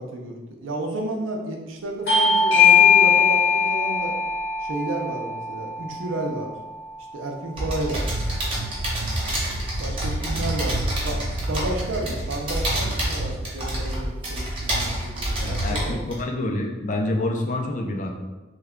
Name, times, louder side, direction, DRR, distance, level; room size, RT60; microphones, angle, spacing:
voice 1, 0.0-4.2 4.6-6.5 7.0-8.1 9.8-16.0, right 1 dB, 90° right, 2 dB, 0.6 m, -31 dB
Bell / Doorbell, 2.1-7.3, left 6 dB, 75° left, 1.1 m, -20 dB
sound 1, 7.6-16.2, right 1 dB, 30° right, 0.9 m, -27 dB
voice 2, 15.4-18.1, left 1 dB, 40° left, 2 dB, 0.4 m, -27 dB
3.2 x 2.2 x 3.6 m, 1.1 s
head